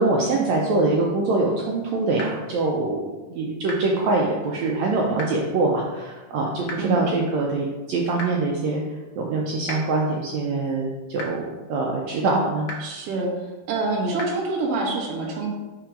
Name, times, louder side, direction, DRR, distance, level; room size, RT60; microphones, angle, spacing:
voice 1, 0.0-8.8 9.2-12.7, right 3 dB, 80° right, -1 dB, 1.6 m, -24 dB
sound 1, 2.2-2.3 3.7-3.8 5.2-5.3 6.7-6.8 8.2-8.3 9.7-9.8 11.2-11.3 12.7-12.8 14.2-14.3, left 1 dB, 80° left, 1.2 m, -32 dB
voice 2, 12.8-13.3 13.7-15.5, right 3 dB, 60° right, -2 dB, 1.7 m, -26 dB
4.5 x 4.5 x 5.0 m, 1.2 s
omnidirectional pair, 3.8 m